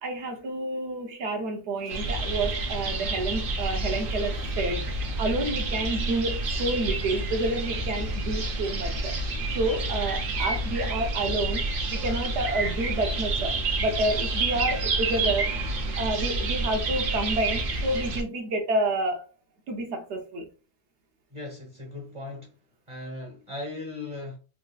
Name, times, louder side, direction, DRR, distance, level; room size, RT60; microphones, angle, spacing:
voice 1, 0.0-9.1 9.5-15.5 15.9-19.3 19.7-20.5, right 2 dB, 85° right, 1.0 m, -29 dB
sound 1, 1.9-18.2, right 2 dB, 60° right, 0.8 m, -29 dB
voice 2, 21.3-22.5 22.9-24.4, left 2 dB, 30° right, 0.8 m, -38 dB
4.0 x 2.5 x 2.3 m
omnidirectional pair, 1.1 m